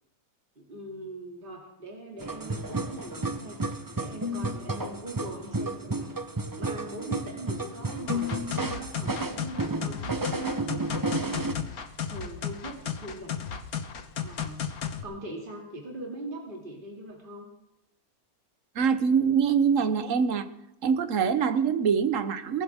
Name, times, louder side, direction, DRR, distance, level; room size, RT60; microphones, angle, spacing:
voice 1, 0.6-3.6 3.9-6.1 6.5-13.4 14.2-14.7 15.0-17.5, right 1 dB, 35° right, -1 dB, 2.7 m, -41 dB
sound 1, 2.2-11.5, right 2 dB, 20° right, 0.7 m, -32 dB
sound 2, 8.1-15.0, left 7 dB, 80° left, 1.7 m, -34 dB
voice 2, 18.7-20.5 20.8-22.6, right 6 dB, 60° right, 11 dB, 1.3 m, -24 dB
22.0 x 15.5 x 3.6 m, 0.89 s
omnidirectional pair, 1.5 m